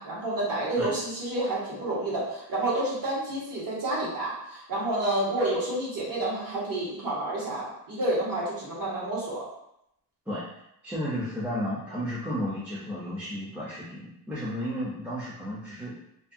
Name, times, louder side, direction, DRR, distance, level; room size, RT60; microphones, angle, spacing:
voice 1, 0.0-9.4, right 1 dB, 55° right, -7 dB, 1.4 m, -29 dB
voice 2, 10.8-15.9, equal, 5° right, -8 dB, 0.5 m, -33 dB
2.7 x 2.7 x 2.5 m, 0.77 s
wide cardioid pair, 150°, 39 cm